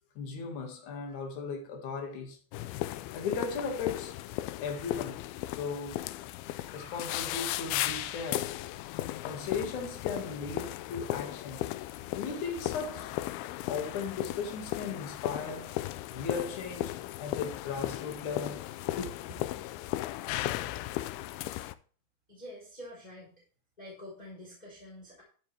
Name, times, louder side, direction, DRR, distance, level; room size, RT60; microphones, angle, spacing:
voice 1, 0.2-2.4 3.1-4.1 4.6-6.0 6.6-8.6 9.2-11.7 12.1-13.2 13.6-15.8 16.1-19.4, left 5 dB, 55° left, 3.1 m, -37 dB
sound 1, 2.5-21.7, left 15 dB, 85° left, 2.5 m, -36 dB
voice 2, 22.3-23.3 23.8-25.2, left 1 dB, 10° left, 3.9 m, -47 dB
12.5 x 6.9 x 3.4 m
omnidirectional pair, 4.4 m